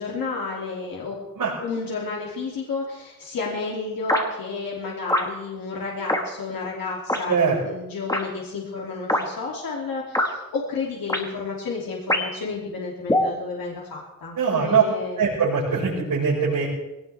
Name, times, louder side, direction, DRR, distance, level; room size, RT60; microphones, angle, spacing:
voice 1, 0.0-1.2 1.6-7.4 7.6-15.3, left 4 dB, 90° left, -4 dB, 2.9 m, -31 dB
sound 1, 4.1-4.3 5.1-5.3 6.1-6.2 7.1-7.3 8.1-8.2 9.1-9.2 10.1-10.3 11.1-11.2 12.1-12.4 13.1-13.3, left 1 dB, 10° left, 1.7 m, -22 dB
voice 2, 14.4-14.8 15.2-16.7, right 6 dB, 85° right, -8 dB, 5.3 m, -21 dB
21.0 x 18.5 x 3.5 m, 1.0 s
wide cardioid pair, 145°, 34 cm